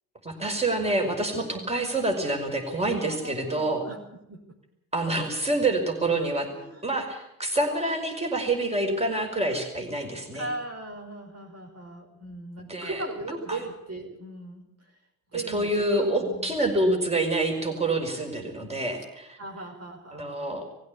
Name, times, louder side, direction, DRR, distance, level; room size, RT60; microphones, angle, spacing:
voice 1, 0.2-3.8 4.9-6.5 6.8-10.5 12.7-13.0 13.5-13.6 15.3-19.4 20.1-20.6, right 2 dB, 15° right, 3 dB, 5.3 m, -27 dB
voice 2, 3.1-4.4 6.5-7.0 10.3-14.7 15.3-16.6 19.4-20.7, right 2 dB, 35° right, 1 dB, 5.3 m, -38 dB
19.5 x 16.0 x 8.6 m, 0.84 s
hypercardioid pair, 55°, 42 cm